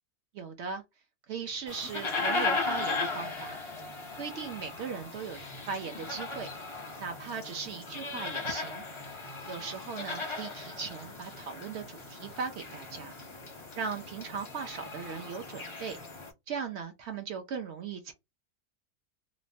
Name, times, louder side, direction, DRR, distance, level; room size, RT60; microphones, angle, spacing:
voice 1, 0.3-0.8 1.3-3.6 4.2-5.4 5.7-6.5 7.0-8.8 9.5-13.1 13.8-16.0 16.5-18.1, right 6 dB, 70° right, 0.6 m, -38 dB
sound 1, 1.7-16.3, left 3 dB, 35° left, 0.4 m, -37 dB
3.0 x 2.1 x 2.6 m
omnidirectional pair, 1.6 m